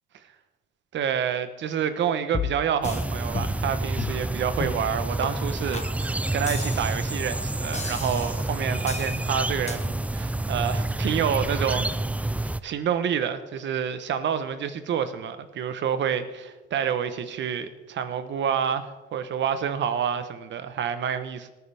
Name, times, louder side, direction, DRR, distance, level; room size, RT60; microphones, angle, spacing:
voice 1, 0.9-12.3 12.6-21.5, right 8 dB, 70° right, 11 dB, 1.1 m, -28 dB
sound 1, 2.3-3.0 3.3-3.7 4.0-4.2 4.6-4.9 5.2-5.3 5.7-5.9 6.5-7.1 7.7-8.4 8.9-9.2 9.7-9.8, left 5 dB, 35° left, 1.3 m, -33 dB
sound 2, 2.8-12.6, right 2 dB, 5° right, 0.4 m, -28 dB
19.0 x 9.3 x 3.5 m, 1.2 s
cardioid pair, 90°, 20 cm